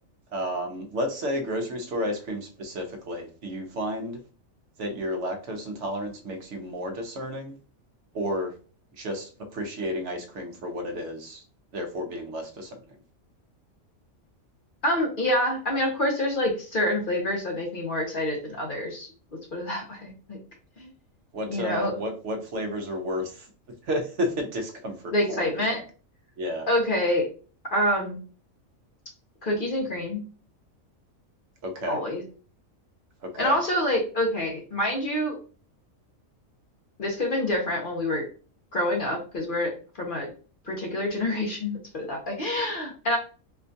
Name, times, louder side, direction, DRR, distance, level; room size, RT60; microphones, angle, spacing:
voice 1, 0.3-4.2 4.8-7.5 8.1-8.5 9.0-11.4 11.7-12.7 21.3-23.5 23.9-25.5 26.4-26.7 31.6-32.0 33.2-33.6, equal, 65° right, 4 dB, 0.9 m, -31 dB
voice 2, 14.8-19.1 19.5-20.1 20.8-20.9 21.5-21.9 25.1-25.8 26.7-27.3 27.7-28.2 29.4-30.2 31.9-32.2 33.4-35.3 37.0-38.2 38.7-39.7 40.0-40.3 40.7-43.2, left 1 dB, 50° left, 0 dB, 0.7 m, -26 dB
4.3 x 2.2 x 2.6 m, 0.38 s
omnidirectional pair, 1.4 m